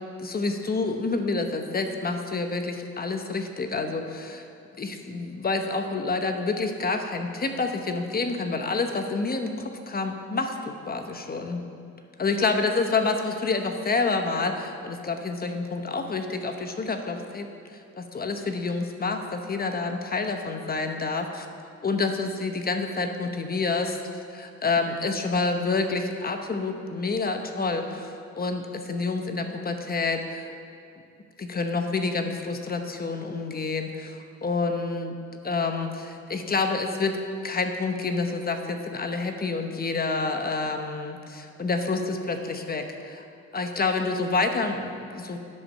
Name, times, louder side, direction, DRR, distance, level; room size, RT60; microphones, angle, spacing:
voice 1, 0.2-4.4 4.8-11.6 12.2-17.5 17.7-21.4 21.8-24.0 24.3-30.5 31.4-35.1 35.4-37.2 37.4-43.3 43.5-45.4, left 3 dB, 30° left, 5 dB, 1.0 m, -28 dB
10.5 x 5.3 x 6.5 m, 2.4 s
cardioid pair, 90°, 30 cm